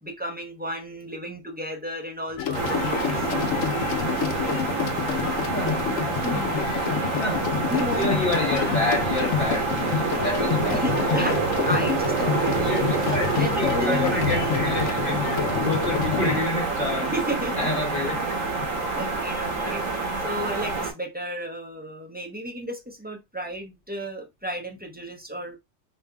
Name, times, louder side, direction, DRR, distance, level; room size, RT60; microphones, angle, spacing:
voice 1, 0.0-3.3 6.2-6.6 7.7-8.1 10.7-12.5 12.8-14.1 17.1-17.7 18.6-18.7 18.9-25.6, equal, 10° right, 0.5 m, -33 dB
sound 1, 2.4-16.4, left 7 dB, 90° left, 1.0 m, -28 dB
sound 2, 2.5-20.9, right 4 dB, 80° right, 1.3 m, -27 dB
voice 2, 5.5-5.9 7.2-7.5 7.9-11.3 12.6-15.2 15.5-17.1 17.6-18.5 19.6-19.8, left 2 dB, 50° left, 1.0 m, -29 dB
4.6 x 2.5 x 2.2 m
omnidirectional pair, 1.3 m